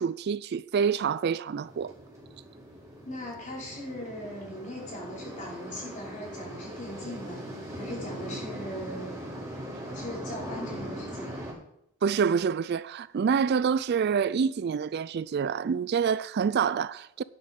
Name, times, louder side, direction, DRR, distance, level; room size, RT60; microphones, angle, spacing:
voice 1, 0.0-1.9 12.0-17.2, right 6 dB, 50° right, 0.3 m, -27 dB
sound 1, 1.6-11.5, right 1 dB, 15° right, 4.8 m, -40 dB
voice 2, 3.0-7.4 7.8-9.1 9.9-11.3, left 1 dB, 40° left, 5.3 m, -39 dB
10.5 x 9.9 x 5.4 m
head